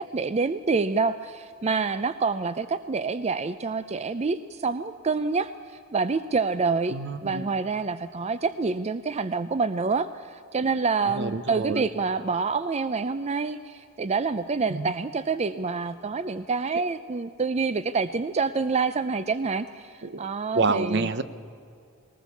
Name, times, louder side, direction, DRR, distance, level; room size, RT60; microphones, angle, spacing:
voice 1, 0.0-21.1, right 4 dB, 30° right, 13 dB, 0.5 m, -27 dB
voice 2, 6.9-7.5 11.1-11.9 14.7-14.9 20.0-20.3 20.5-21.2, right 3 dB, 60° right, 13 dB, 0.9 m, -27 dB
21.0 x 19.0 x 7.0 m, 2.5 s
head